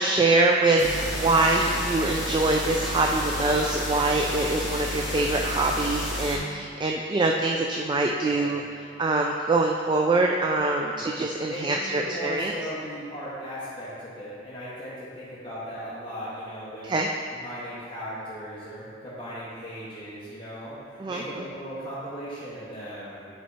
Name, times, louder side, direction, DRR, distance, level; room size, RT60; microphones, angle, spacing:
voice 1, 0.0-8.6 9.0-12.5 16.8-17.1 21.0-21.2, right 2 dB, 25° right, 1 dB, 0.3 m, -24 dB
sound 1, 0.8-6.4, equal, ahead, 1.7 m, -31 dB
voice 2, 8.2-8.6 11.5-16.9 17.3-23.3, equal, 30° left, -11 dB, 1.5 m, -37 dB
10.0 x 4.4 x 2.9 m, 2.3 s
head